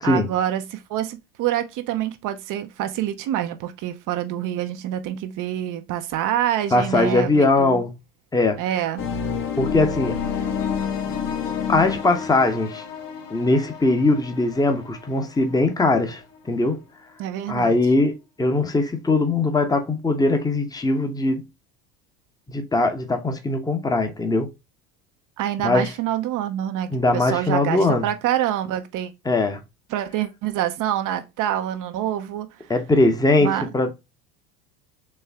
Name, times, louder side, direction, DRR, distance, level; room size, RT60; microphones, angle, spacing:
voice 1, 0.0-7.8 8.6-9.0 17.2-17.8 25.4-29.1 29.9-32.5 33.4-33.7, right 11 dB, 50° right, 0.7 m, -26 dB
voice 2, 6.7-7.9 8.3-8.6 9.6-10.2 11.7-12.8 13.3-16.8 17.5-21.4 22.5-24.5 25.6-25.9 26.9-28.1 29.2-29.6 32.7-33.9, left 2 dB, 10° left, 0.9 m, -21 dB
sound 1, 9.0-15.8, left 7 dB, 50° left, 1.3 m, -29 dB
4.4 x 3.1 x 3.5 m
hypercardioid pair, 90°, 42 cm